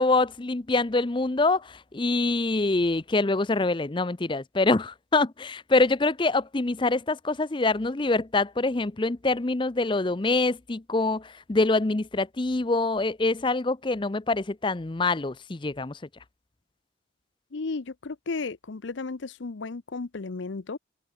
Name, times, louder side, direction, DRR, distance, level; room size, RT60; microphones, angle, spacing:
voice 1, 0.0-16.0, left 3 dB, 25° left, 0.6 m, -25 dB
voice 2, 17.5-20.8, left 3 dB, 70° left, 0.7 m, -34 dB
head